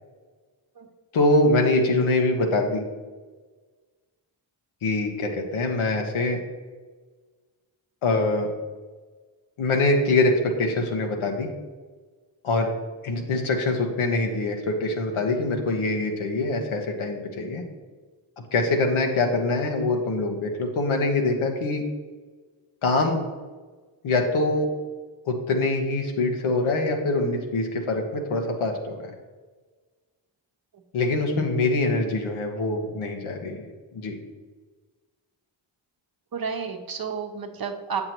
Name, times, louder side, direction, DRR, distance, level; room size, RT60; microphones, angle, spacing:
voice 1, 1.1-2.8 4.8-6.4 8.0-8.5 9.6-11.5 12.4-12.7 13.0-17.6 18.5-21.8 22.8-23.2 24.0-24.7 25.3-29.1 30.9-33.7 33.9-34.2, left 2 dB, 75° left, 3 dB, 1.2 m, -24 dB
voice 2, 36.3-38.0, right 6 dB, 45° right, 4 dB, 0.9 m, -31 dB
7.9 x 6.0 x 3.0 m, 1.4 s
cardioid pair, 55°, 49 cm